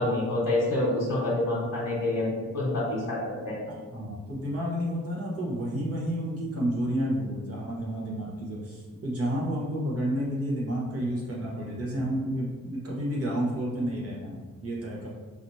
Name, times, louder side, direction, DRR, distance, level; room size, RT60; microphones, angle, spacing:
voice 1, 0.0-3.7, left 2 dB, 60° left, -8 dB, 1.3 m, -27 dB
voice 2, 3.7-15.1, equal, 45° right, -5 dB, 1.0 m, -30 dB
4.9 x 3.1 x 2.7 m, 1.4 s
wide cardioid pair, 180°, 32 cm